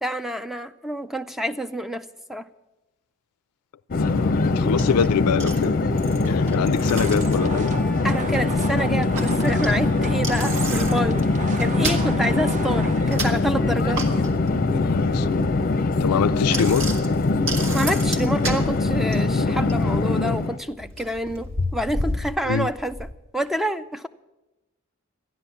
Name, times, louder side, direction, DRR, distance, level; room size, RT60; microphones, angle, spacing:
voice 1, 0.0-2.5 8.0-11.2 11.6-14.0 17.7-22.9 23.3-24.1, right 1 dB, ahead, 0.4 m, -27 dB
voice 2, 3.9-5.8 6.3-7.7 14.7-15.5 16.0-16.9 22.4-22.7, left 7 dB, 85° left, 0.4 m, -25 dB
Conversation / Chatter / Fixed-wing aircraft airplane, 3.9-20.6, left 3 dB, 40° left, 0.6 m, -22 dB
Bicycle, 4.3-23.1, right 1 dB, 60° right, 1.6 m, -34 dB
sound 1, 6.8-13.4, right 2 dB, 35° right, 0.7 m, -34 dB
14.0 x 10.5 x 7.1 m
head